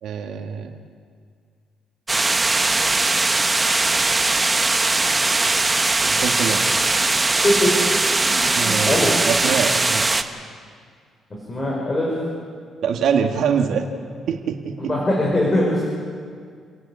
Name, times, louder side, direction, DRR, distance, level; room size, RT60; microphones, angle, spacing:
voice 1, 0.0-0.8 5.3-6.6 8.5-10.1 12.8-13.8 14.3-14.9, right 7 dB, 75° right, 4 dB, 1.8 m, -25 dB
sound 1, 2.1-10.2, right 3 dB, 20° right, 1.2 m, -20 dB
voice 2, 8.7-9.1 11.5-12.1 14.9-15.8, left 1 dB, 30° left, -4 dB, 6.0 m, -21 dB
29.5 x 11.5 x 8.6 m, 2.1 s
cardioid pair, 90°, 0 cm